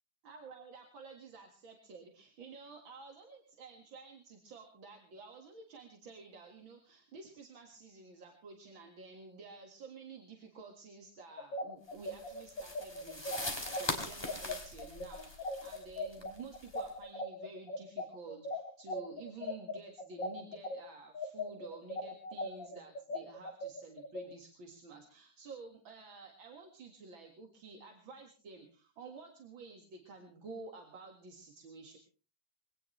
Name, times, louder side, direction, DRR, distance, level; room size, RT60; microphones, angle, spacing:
voice 1, 0.2-32.0, right 4 dB, 80° right, 2 dB, 2.7 m, -51 dB
sound 1, 11.4-20.8 21.1-24.2, left 1 dB, 65° left, 2.8 m, -39 dB
sound 2, 12.0-16.9, left 1 dB, 10° left, 2.9 m, -42 dB
22.0 x 18.0 x 3.3 m, 0.36 s
omnidirectional pair, 2.1 m